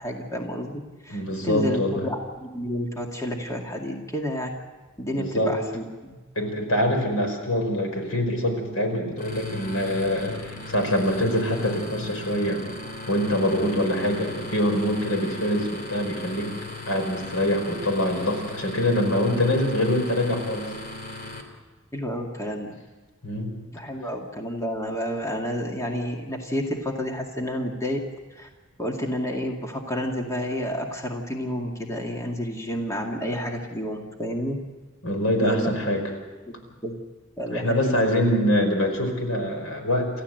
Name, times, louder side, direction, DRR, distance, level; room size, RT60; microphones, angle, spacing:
voice 1, 0.0-4.5 5.0-6.2 21.9-22.7 23.7-28.0 28.3-28.5 28.8-34.6 35.4-35.7 36.5-36.6 36.8-37.0 37.4-38.0, equal, 15° left, 1 dB, 2.1 m, -30 dB
voice 2, 1.1-2.1 5.1-5.5 6.4-12.6 13.1-16.5 16.9-20.6 23.2-23.5 35.0-36.1 37.5-40.1, left 1 dB, 80° left, 4 dB, 5.2 m, -24 dB
sound 1, 9.2-21.4, left 2 dB, 45° left, 3.2 m, -37 dB
29.0 x 14.5 x 7.9 m, 1.3 s
head